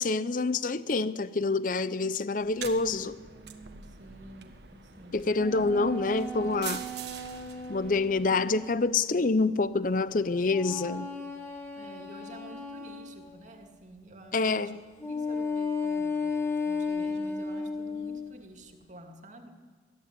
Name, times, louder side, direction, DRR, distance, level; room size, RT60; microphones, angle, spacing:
voice 1, 0.0-3.2 5.1-6.8 7.7-11.1 14.3-14.8, left 3 dB, 45° left, 0.6 m, -27 dB
sound 1, 2.4-8.8, right 7 dB, 65° right, 1.5 m, -45 dB
voice 2, 3.0-6.0 10.1-10.4 11.7-14.7 15.0-19.5, right 1 dB, 40° right, 2.5 m, -50 dB
sound 2, 5.3-8.9 10.5-13.4 15.0-18.3, left 3 dB, 15° left, 3.5 m, -34 dB
21.5 x 14.5 x 9.9 m
head